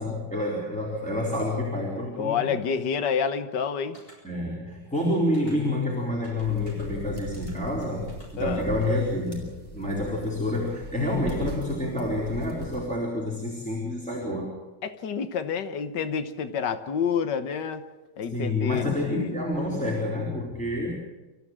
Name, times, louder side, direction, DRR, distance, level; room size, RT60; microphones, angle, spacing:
voice 1, 0.0-2.6 4.2-9.5 9.7-14.6 18.3-20.9, left 1 dB, 5° left, -3 dB, 4.1 m, -28 dB
voice 2, 2.2-4.0 8.4-8.7 14.8-17.8 18.2-19.4, left 7 dB, 85° left, 10 dB, 1.8 m, -28 dB
sound 1, 3.9-4.2 5.3-5.5 6.2-6.9 7.3-7.5 8.1-8.3 8.8-8.9, equal, 50° left, 7.7 m, -52 dB
sound 2, 6.4-12.8, equal, 20° left, 5.7 m, -39 dB
29.0 x 14.5 x 7.5 m, 1.2 s
omnidirectional pair, 1.8 m